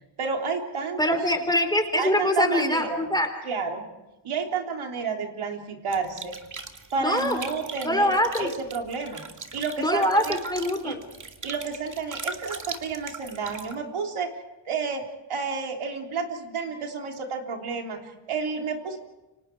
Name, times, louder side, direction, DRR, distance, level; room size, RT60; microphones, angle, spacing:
voice 1, 0.2-1.2 2.0-3.0 3.4-3.8 4.2-6.3 6.9-9.3 9.5-10.4 10.8-11.0 11.4-14.3 14.7-15.0 15.3-19.0, right 5 dB, 75° right, 2 dB, 3.6 m, -30 dB
voice 2, 1.0-3.3 7.0-7.4 7.8-8.5 9.8-11.0, left 1 dB, 10° left, 6 dB, 3.7 m, -24 dB
sound 1, 5.9-13.7, right 4 dB, 35° right, 2.4 m, -40 dB
29.5 x 25.0 x 4.7 m, 1.0 s
cardioid pair, 100°, 49 cm